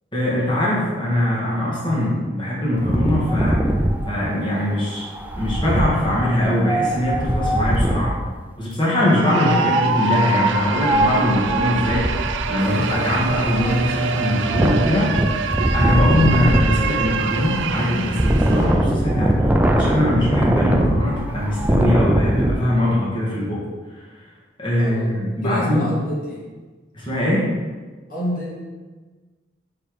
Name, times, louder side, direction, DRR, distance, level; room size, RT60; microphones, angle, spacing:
voice 1, 0.1-3.7 4.1-5.1 5.4-8.2 8.6-12.1 12.5-15.1 15.7-23.6 24.6-25.9 26.9-27.5, left 1 dB, 25° left, -6 dB, 1.7 m, -21 dB
Wind, 2.8-8.2 9.3-22.5, right 1 dB, 10° right, 0.4 m, -21 dB
sound 1, 9.0-18.9, right 7 dB, 80° right, 0.3 m, -27 dB
sound 2, 12.6-18.7, equal, 70° left, 1.3 m, -35 dB
voice 2, 24.7-25.1 25.4-26.5 28.1-28.6, equal, 50° left, -5 dB, 1.9 m, -28 dB
5.7 x 4.4 x 4.9 m, 1.4 s
head